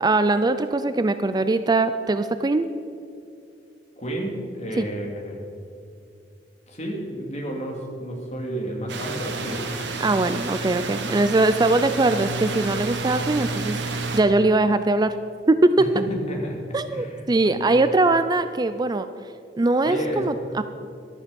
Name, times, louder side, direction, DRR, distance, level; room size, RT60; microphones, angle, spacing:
voice 1, 0.0-2.7 4.8-4.9 10.0-15.2 15.5-16.1 16.7-19.1 19.6-20.6, right 2 dB, 25° right, 11 dB, 0.4 m, -21 dB
voice 2, 4.0-5.4 6.7-9.6 15.8-16.6 16.9-17.7 19.8-20.4, right 1 dB, 40° left, 0 dB, 2.8 m, -31 dB
sound 1, 8.9-14.2, right 3 dB, 90° right, 1.5 m, -30 dB
14.5 x 12.5 x 5.3 m, 2.4 s
head